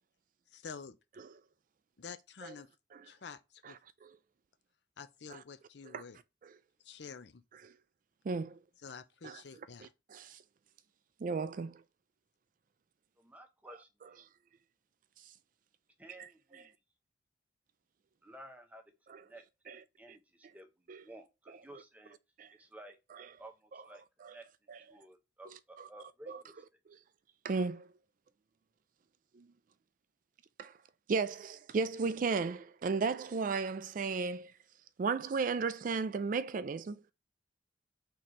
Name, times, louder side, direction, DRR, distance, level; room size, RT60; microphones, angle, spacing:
voice 1, 0.5-1.0 2.0-2.7 3.0-3.8 5.0-6.2 6.8-7.4 8.8-9.9, left 5 dB, 65° left, 0.6 m, -48 dB
voice 2, 8.3-8.6 9.2-9.4 10.1-10.4 11.2-11.8 16.2-16.3 19.1-19.2 19.7-19.8 20.9-21.0 22.4-22.5 24.2-24.3 24.7-24.8 25.8-25.9 26.3-26.4 27.4-27.9 29.4-29.5 30.6-30.7 31.1-34.5 35.0-37.0, right 4 dB, 45° right, 0.3 m, -34 dB
voice 3, 13.2-14.3 16.0-16.7 18.2-18.8 19.2-19.4 20.0-20.7 21.0-22.2 22.6-23.0 23.4-24.0 24.3-24.4 24.9-26.6, right 1 dB, 10° right, 0.8 m, -53 dB
4.3 x 3.8 x 3.1 m
head